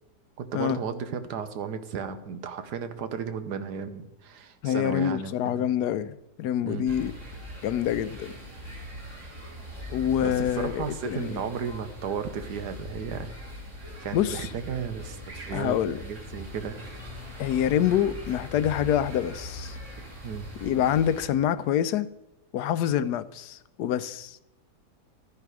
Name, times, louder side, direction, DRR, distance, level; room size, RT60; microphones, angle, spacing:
voice 1, 0.4-5.7 6.7-6.9 10.2-13.3 14.0-15.7 16.0-16.8 20.2-20.5, right 6 dB, 85° right, 1.5 m, -34 dB
voice 2, 4.6-7.1 7.6-8.3 9.9-11.4 14.1-14.5 15.5-16.0 17.4-19.8 20.6-22.1 22.5-24.4, left 10 dB, 80° left, 1.2 m, -26 dB
sound 1, 6.9-21.3, left 1 dB, 45° right, 3.5 m, -41 dB
13.0 x 10.0 x 4.8 m
omnidirectional pair, 1.7 m